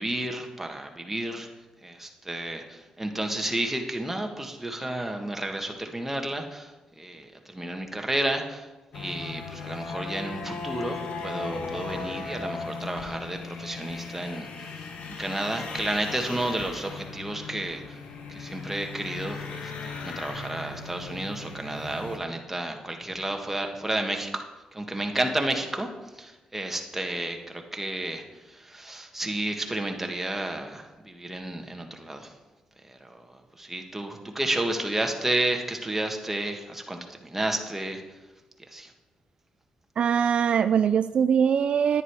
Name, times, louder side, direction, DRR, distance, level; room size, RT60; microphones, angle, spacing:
voice 1, 0.0-1.5 1.8-8.7 8.9-14.7 15.1-18.0 18.3-24.4 24.7-25.9 26.2-32.3 32.8-38.0 38.7-38.9, right 1 dB, 10° right, 3 dB, 1.6 m, -31 dB
sound 1, 8.9-22.2, left 4 dB, 75° left, 1.3 m, -37 dB
voice 2, 40.0-42.0, right 7 dB, 60° right, 11 dB, 0.3 m, -22 dB
9.8 x 9.8 x 4.7 m, 1.1 s
cardioid pair, 80°, 2 cm